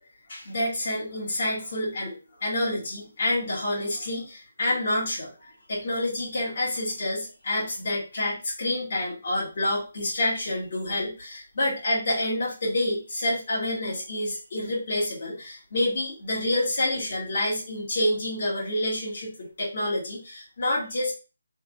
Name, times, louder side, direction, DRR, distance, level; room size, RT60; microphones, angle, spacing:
voice 1, 0.3-21.1, left 1 dB, 45° left, -6 dB, 2.0 m, -28 dB
3.5 x 3.2 x 2.5 m, 0.33 s
hypercardioid pair, 170°, 0 cm